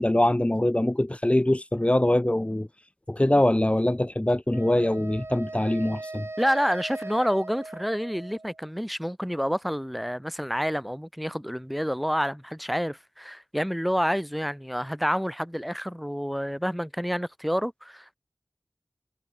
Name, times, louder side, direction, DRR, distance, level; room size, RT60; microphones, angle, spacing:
voice 1, 0.0-2.7 3.1-6.3, left 1 dB, 25° left, 1.7 m, -23 dB
Wind instrument woodwind instrument, 4.5-8.6, right 2 dB, 55° right, 3.2 m, -39 dB
voice 2, 6.4-18.2, equal, ahead, 4.9 m, -28 dB
wide cardioid pair, 45°, 5 cm